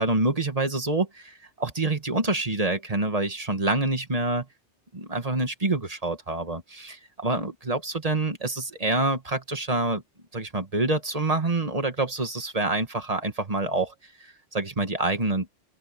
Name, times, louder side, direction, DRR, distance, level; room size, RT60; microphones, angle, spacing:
voice 1, 0.0-4.5 4.9-10.0 10.3-13.9 14.2-15.5, right 2 dB, 35° right, 1.7 m, -27 dB
open air
omnidirectional pair, 1.2 m